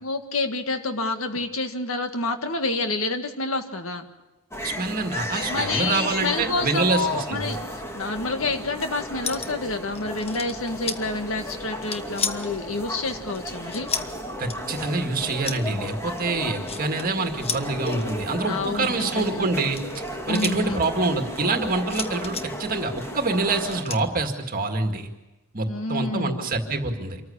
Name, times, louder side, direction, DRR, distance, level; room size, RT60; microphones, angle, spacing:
voice 1, 0.0-4.1 5.5-13.9 18.4-19.6 20.3-20.8 25.6-26.4, left 3 dB, 85° left, 6 dB, 1.7 m, -28 dB
sound 1, 4.5-23.8, equal, 15° left, 1.8 m, -34 dB
voice 2, 4.6-7.5 14.4-19.8 20.3-25.1 25.5-27.2, right 3 dB, 45° right, 4 dB, 2.0 m, -26 dB
sound 2, 9.2-9.6 10.0-11.0 11.6-12.6 13.3-14.1 14.5-14.6 15.2-15.6 16.2-17.1 17.4-18.0 18.9-20.6 21.9-22.5 23.7-24.0, left 6 dB, 30° left, 1.2 m, -31 dB
26.5 x 14.5 x 8.6 m, 1.1 s
head